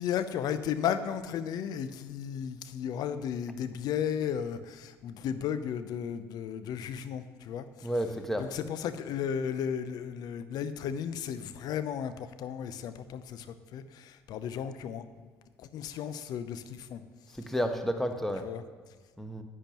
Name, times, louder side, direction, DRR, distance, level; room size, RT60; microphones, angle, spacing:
voice 1, 0.0-7.9 8.4-15.3 15.6-17.0 18.4-18.6, left 8 dB, 60° left, 12 dB, 0.6 m, -34 dB
voice 2, 7.8-8.5 17.3-18.5 19.2-19.4, equal, 5° left, 6 dB, 1.1 m, -31 dB
10.0 x 8.7 x 3.0 m, 1.5 s
hypercardioid pair, 55°, 8 cm